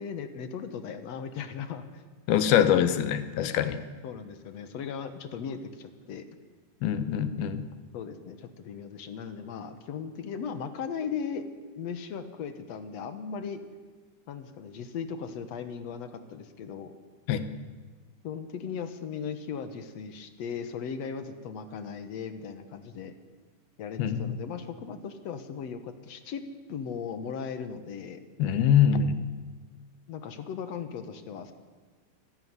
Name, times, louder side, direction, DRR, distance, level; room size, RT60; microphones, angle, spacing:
voice 1, 0.0-2.0 4.0-6.3 7.9-11.5 11.8-13.6 14.3-16.9 18.2-23.1 23.8-26.4 26.7-28.2 30.1-31.5, left 6 dB, 60° left, 10 dB, 1.9 m, -37 dB
voice 2, 2.3-3.8 6.8-7.7 17.3-17.5 24.0-24.4 28.4-29.2, left 9 dB, 75° left, 11 dB, 3.0 m, -24 dB
26.0 x 14.0 x 9.7 m, 1.4 s
omnidirectional pair, 4.5 m